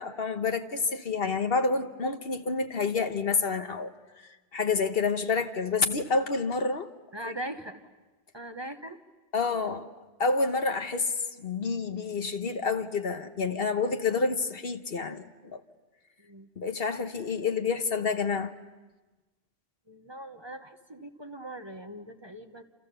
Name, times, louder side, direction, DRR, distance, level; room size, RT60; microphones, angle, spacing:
voice 1, 0.0-3.9 4.5-6.9 9.3-9.9 10.2-11.1 11.4-15.6 16.6-18.5, left 4 dB, 60° left, 1.4 m, -28 dB
voice 2, 7.1-7.8 8.3-9.0 16.2-16.5 19.9-22.6, right 1 dB, 25° right, 1.1 m, -40 dB
29.0 x 28.0 x 6.9 m
omnidirectional pair, 1.1 m